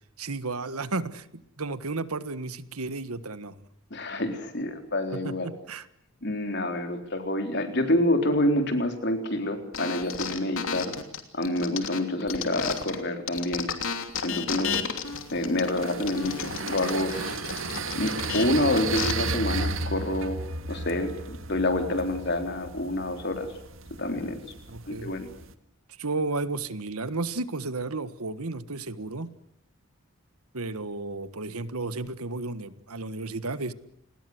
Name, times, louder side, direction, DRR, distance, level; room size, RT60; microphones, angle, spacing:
voice 1, 0.2-3.6 5.1-5.9 24.7-25.1 26.0-29.3 30.5-33.7, right 3 dB, 85° right, 13 dB, 1.5 m, -33 dB
voice 2, 3.9-5.5 6.2-10.9 11.3-13.7 14.2-14.8 15.3-17.2 17.9-20.4 20.7-23.5 24.0-24.4 24.9-25.3, left 1 dB, 50° left, 6 dB, 3.8 m, -27 dB
sound 1, 9.7-13.0 13.3-19.1, left 6 dB, 70° left, 2.9 m, -33 dB
sound 2, 15.1-25.5, right 3 dB, 65° right, 1.9 m, -34 dB
29.5 x 20.5 x 8.0 m, 0.72 s
head